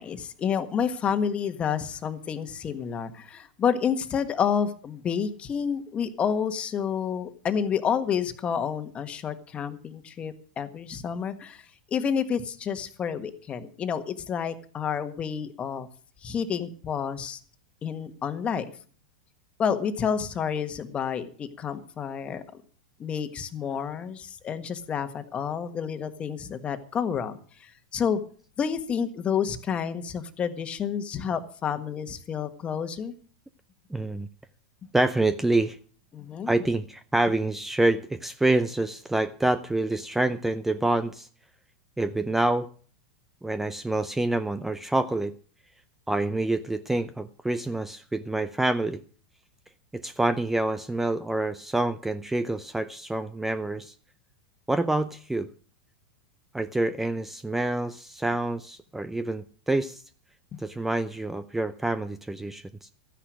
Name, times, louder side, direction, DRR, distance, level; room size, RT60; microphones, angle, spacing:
voice 1, 0.0-11.6 11.9-15.9 16.2-17.4 17.8-18.7 19.6-22.4 23.0-28.2 28.6-33.1 36.1-36.5, left 7 dB, 30° left, 9 dB, 1.5 m, -29 dB
voice 2, 33.9-34.3 34.9-35.8 36.5-41.3 42.0-42.7 43.4-45.3 46.1-49.0 49.9-53.9 54.7-55.5 56.5-60.0 60.6-62.9, right 2 dB, 5° right, 13 dB, 0.6 m, -27 dB
13.5 x 10.0 x 6.1 m, 0.43 s
hypercardioid pair, 95°, 4 cm